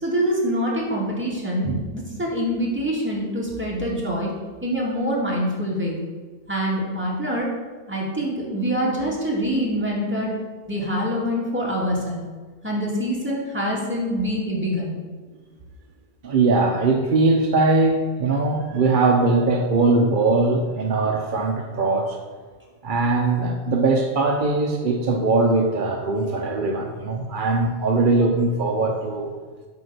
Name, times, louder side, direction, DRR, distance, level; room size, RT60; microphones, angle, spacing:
voice 1, 0.0-1.7 1.9-4.3 4.6-6.0 6.5-7.5 7.9-10.4 10.7-12.2 12.6-14.9, equal, 10° right, -5 dB, 2.1 m, -25 dB
voice 2, 16.2-22.2 22.8-29.3, right 3 dB, 45° right, 2 dB, 0.8 m, -21 dB
8.3 x 4.9 x 6.7 m, 1.4 s
omnidirectional pair, 1.3 m